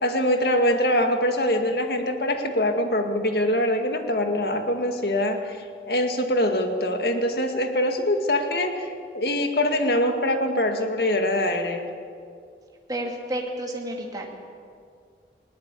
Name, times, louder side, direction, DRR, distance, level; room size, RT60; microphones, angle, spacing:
voice 1, 0.0-5.6 5.9-11.9, left 1 dB, 65° left, 5 dB, 2.1 m, -23 dB
voice 2, 12.9-14.4, right 1 dB, 20° right, 0 dB, 2.5 m, -31 dB
20.0 x 18.5 x 8.4 m, 2.3 s
head